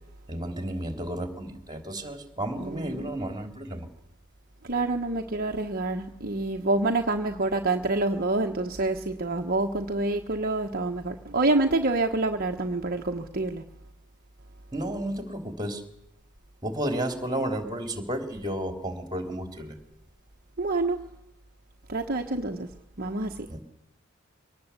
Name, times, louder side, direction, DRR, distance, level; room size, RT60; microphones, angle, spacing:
voice 1, 0.3-3.9 14.7-15.8 16.6-19.8 23.5-23.6, right 1 dB, 20° right, 7 dB, 3.4 m, -32 dB
voice 2, 2.6-2.9 4.6-13.6 20.6-21.0 21.9-22.7 23.0-23.5, right 2 dB, 45° right, 3 dB, 1.3 m, -27 dB
24.0 x 19.0 x 8.3 m, 0.81 s
head